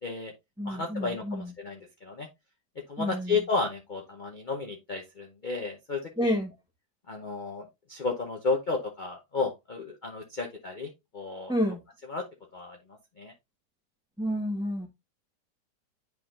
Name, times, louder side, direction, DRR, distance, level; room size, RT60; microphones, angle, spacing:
voice 1, 0.0-0.3 0.6-2.3 2.9-6.4 7.1-11.5 12.1-12.2 12.5-12.8 13.2-13.3, left 4 dB, 35° left, 0.8 m, -33 dB
voice 2, 0.6-1.5 3.0-3.4 6.2-6.5 11.5-11.8 14.2-14.9, equal, 5° right, 1.1 m, -29 dB
10.5 x 3.8 x 2.5 m
omnidirectional pair, 1.8 m